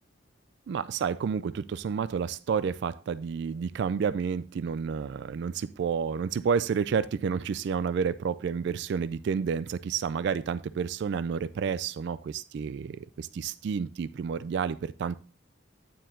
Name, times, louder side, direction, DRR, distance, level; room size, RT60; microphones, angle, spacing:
voice 1, 0.7-15.1, right 6 dB, 60° right, 0.3 m, -30 dB
9.2 x 4.5 x 3.7 m
head